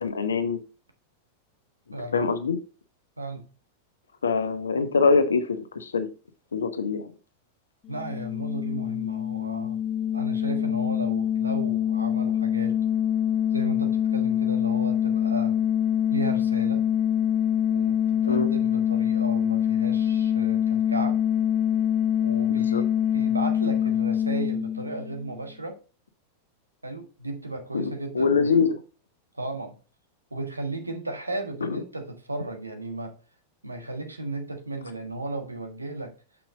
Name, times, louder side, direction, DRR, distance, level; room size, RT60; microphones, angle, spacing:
voice 1, 0.0-0.6 2.1-2.6 4.2-6.1 6.5-7.1 18.3-18.5 22.5-22.8 27.7-28.8 31.6-31.7, left 5 dB, 70° left, 1.0 m, -24 dB
voice 2, 1.9-2.2 3.2-3.4 7.9-9.8 10.1-12.8 13.5-15.6 16.1-16.8 17.7-21.2 22.2-25.8 26.8-28.5 29.3-29.8 30.3-33.1 33.6-36.1, right 2 dB, 85° right, 1.4 m, -35 dB
sound 1, 7.9-25.4, left 9 dB, 30° left, 0.7 m, -25 dB
6.8 x 5.9 x 3.8 m
figure-of-eight pair, 90°, 0 cm